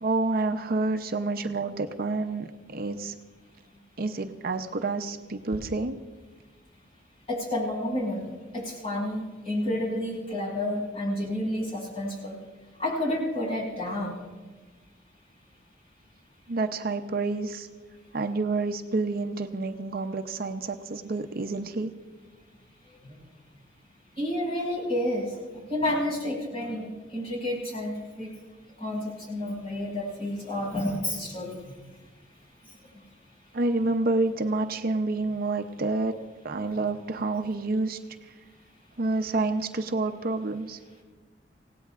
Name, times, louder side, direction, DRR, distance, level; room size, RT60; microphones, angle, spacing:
voice 1, 0.0-3.1 4.0-6.0 16.5-17.7 18.1-21.9 33.5-36.1 36.4-38.0 39.0-40.8, right 3 dB, 55° right, 6 dB, 0.7 m, -28 dB
voice 2, 7.3-12.4 12.8-14.3 23.0-23.2 24.2-28.3 28.8-31.7, left 1 dB, 35° left, -4 dB, 5.7 m, -30 dB
27.0 x 17.5 x 2.5 m, 1.4 s
head